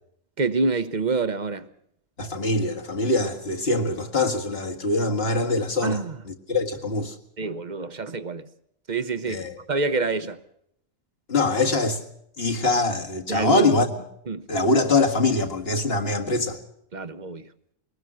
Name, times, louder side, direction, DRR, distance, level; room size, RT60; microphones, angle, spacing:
voice 1, 0.4-1.7 5.8-6.2 7.4-8.5 8.9-9.4 9.7-10.4 13.3-13.7 14.3-14.5 16.9-17.5, right 4 dB, 40° right, 1.0 m, -26 dB
voice 2, 2.2-7.2 9.3-9.6 11.3-12.0 12.4-13.9 14.5-16.6, left 2 dB, 50° left, 2.2 m, -23 dB
22.5 x 19.0 x 6.3 m
omnidirectional pair, 1.3 m